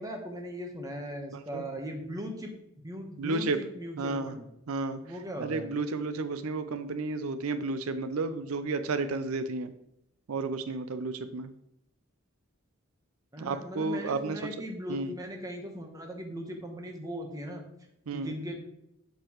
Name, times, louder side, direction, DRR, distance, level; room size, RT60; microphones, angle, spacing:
voice 1, 0.0-2.5 2.8-4.5 5.0-5.7 13.3-17.6 18.1-18.6, equal, 15° right, 2 dB, 1.1 m, -39 dB
voice 2, 1.3-1.6 3.2-3.6 4.0-4.4 4.7-5.0 5.4-9.7 10.3-11.5 13.4-14.6 14.9-15.1 18.1-18.3, right 3 dB, 90° right, 11 dB, 0.5 m, -32 dB
7.6 x 6.8 x 3.0 m, 0.79 s
head